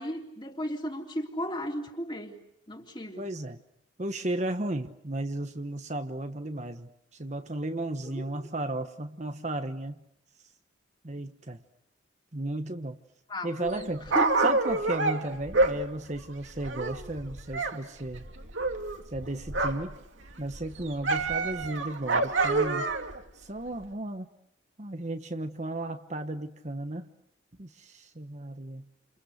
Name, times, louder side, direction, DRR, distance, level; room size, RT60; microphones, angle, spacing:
voice 1, 0.0-2.4 2.7-3.3 8.0-8.2 13.3-13.9 14.1-14.5, equal, 20° left, 2 dB, 3.4 m, -35 dB
voice 2, 3.2-3.6 4.0-9.9 11.0-11.6 12.3-13.0 13.4-14.1 14.4-18.3 19.1-20.0 20.4-22.9 23.3-24.3 24.8-27.1 27.6-28.9, right 1 dB, 35° right, 7 dB, 1.1 m, -34 dB
Dog, 13.7-17.8 18.0-19.9 20.3-23.2 23.8-23.9, right 3 dB, 70° right, 2.7 m, -28 dB
30.0 x 28.5 x 6.6 m, 0.79 s
head